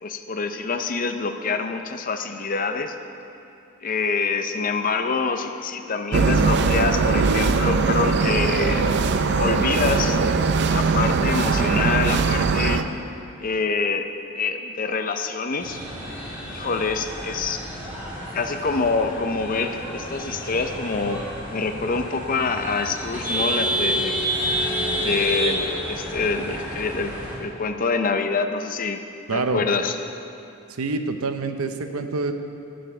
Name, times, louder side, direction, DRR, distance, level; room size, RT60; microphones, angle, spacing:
voice 1, 0.0-3.0 3.8-8.9 9.4-10.2 10.7-12.8 13.4-14.1 14.4-15.8 16.5-17.6 18.3-24.2 25.0-29.0 29.3-30.0, left 4 dB, 40° left, 7 dB, 0.5 m, -26 dB
sound 1, 6.1-12.8, right 4 dB, 50° right, 0.5 m, -20 dB
sound 2, 15.6-27.3, equal, 10° right, 3.0 m, -29 dB
voice 2, 29.3-29.6 30.7-32.3, right 3 dB, 80° right, 7 dB, 0.7 m, -26 dB
9.1 x 7.6 x 7.7 m, 2.7 s
head